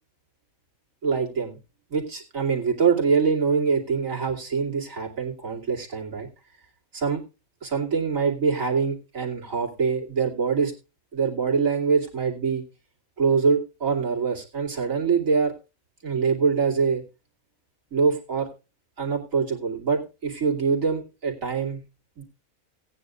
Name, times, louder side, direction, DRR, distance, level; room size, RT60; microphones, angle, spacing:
voice 1, 1.0-1.6 1.9-6.3 6.9-7.2 7.6-10.7 11.1-12.6 13.2-15.5 16.0-17.0 17.9-18.5 19.0-21.8 22.2-22.3, right 5 dB, 65° right, -1 dB, 2.9 m, -24 dB
18.0 x 9.5 x 2.5 m, 0.30 s
omnidirectional pair, 1.5 m